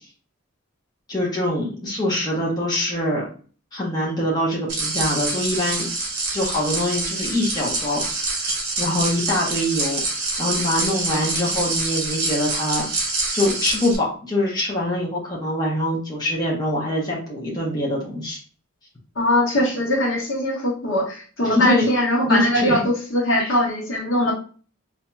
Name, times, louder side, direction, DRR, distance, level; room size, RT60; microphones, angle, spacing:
voice 1, 1.1-3.3 3.7-5.9 6.3-8.0 8.8-10.0 10.4-12.9 13.3-18.4 21.4-21.9 22.3-22.8 23.4-23.5, left 1 dB, 20° left, -4 dB, 0.8 m, -24 dB
sound 1, 4.7-14.0, right 2 dB, 50° right, 1.1 m, -26 dB
voice 2, 19.2-24.3, left 1 dB, 60° left, -2 dB, 1.1 m, -21 dB
4.2 x 2.7 x 2.2 m, 0.39 s
head